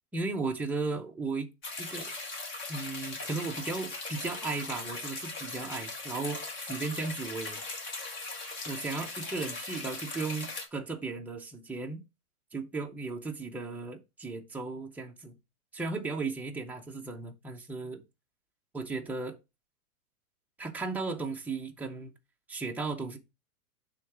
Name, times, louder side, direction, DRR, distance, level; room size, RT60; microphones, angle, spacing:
voice 1, 0.1-1.5 1.8-2.1 2.7-7.6 8.7-12.0 12.5-15.3 15.7-18.0 18.7-19.4 20.6-22.1 22.5-23.2, right 3 dB, 5° right, 0.6 m, -35 dB
sound 1, 1.6-10.7, left 3 dB, 25° left, 1.6 m, -39 dB
6.4 x 3.6 x 5.7 m
hypercardioid pair, 135°, 43 cm